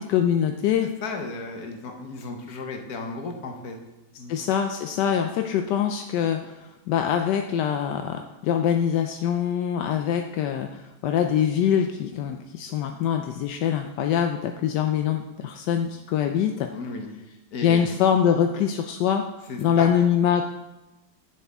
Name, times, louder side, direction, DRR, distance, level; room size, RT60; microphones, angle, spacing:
voice 1, 0.1-0.9 4.3-16.7 17.6-19.3 19.6-20.5, left 8 dB, 80° left, 5 dB, 1.2 m, -24 dB
voice 2, 1.0-3.8 4.2-4.3 16.7-17.1 17.5-17.9 19.5-19.9, left 3 dB, 60° left, 3 dB, 1.5 m, -34 dB
9.2 x 7.5 x 3.5 m, 1.0 s
omnidirectional pair, 1.8 m